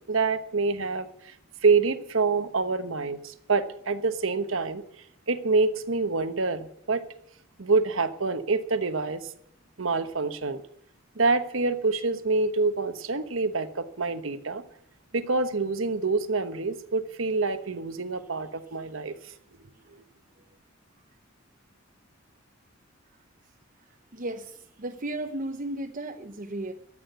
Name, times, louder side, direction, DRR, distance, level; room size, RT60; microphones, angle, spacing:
voice 1, 0.1-1.4 1.6-4.8 5.3-7.0 7.6-9.3 9.8-10.6 11.1-14.6 15.1-19.3, right 4 dB, 80° right, 1.2 m, -26 dB
voice 2, 24.1-26.7, right 1 dB, 40° right, 0.8 m, -34 dB
13.5 x 8.7 x 8.2 m
head